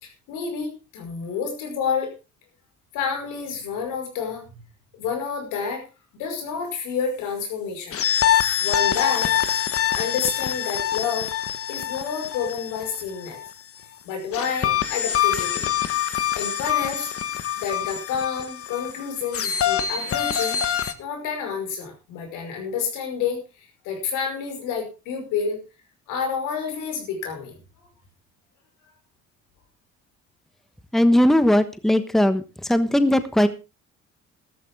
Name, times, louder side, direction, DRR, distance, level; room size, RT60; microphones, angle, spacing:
voice 1, 0.0-2.1 2.9-4.6 4.9-5.8 6.1-8.0 8.6-9.4 9.9-11.3 11.7-13.4 14.0-15.7 16.3-17.1 17.6-20.6 21.0-23.4 23.8-25.6 26.1-27.5, left 6 dB, 90° left, 4 dB, 5.5 m, -29 dB
sound 1, 7.9-13.5 14.3-20.9, left 10 dB, 50° left, 1.4 m, -25 dB
voice 2, 30.9-33.5, left 1 dB, ahead, 11 dB, 1.2 m, -19 dB
13.5 x 13.0 x 3.7 m, 0.29 s
cardioid pair, 90°, 30 cm